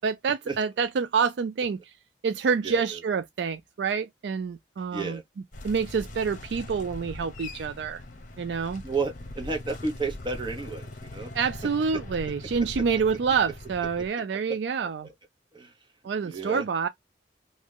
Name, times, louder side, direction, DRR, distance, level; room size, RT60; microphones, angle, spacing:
voice 1, 0.0-1.9 2.2-5.2 5.6-8.0 8.4-8.8 11.3-15.1 16.0-16.9, right 6 dB, 65° right, 0.4 m, -27 dB
voice 2, 2.6-3.0 4.9-5.2 8.8-11.3 15.5-15.7 16.2-16.6, right 4 dB, 25° right, 1.1 m, -32 dB
sound 1, 5.5-14.1, left 1 dB, 45° left, 0.9 m, -41 dB
2.9 x 2.6 x 3.5 m
head